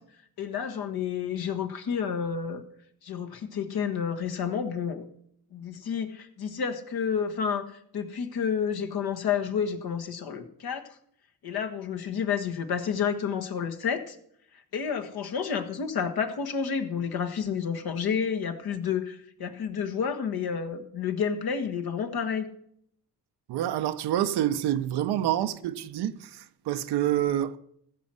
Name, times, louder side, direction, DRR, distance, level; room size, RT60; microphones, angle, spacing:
voice 1, 0.4-2.6 3.0-5.1 5.5-10.8 11.4-14.1 14.7-22.4, left 7 dB, 65° left, 1.4 m, -30 dB
voice 2, 23.5-27.6, right 12 dB, 80° right, 0.8 m, -27 dB
15.0 x 6.3 x 6.2 m
supercardioid pair, 55°, 39 cm